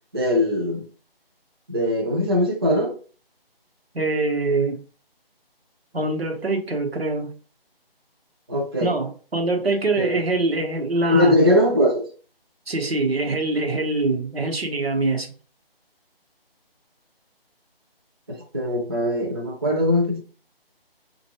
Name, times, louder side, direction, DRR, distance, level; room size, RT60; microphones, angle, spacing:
voice 1, 0.1-0.8 1.7-2.9 8.5-9.0 10.0-10.2 11.1-12.1 18.3-20.2, left 1 dB, 25° right, 0.6 m, -21 dB
voice 2, 3.9-4.8 5.9-7.3 8.8-11.3 12.7-15.3, right 2 dB, 85° right, 1.1 m, -24 dB
4.3 x 2.5 x 2.9 m
figure-of-eight pair, 160°, 30 cm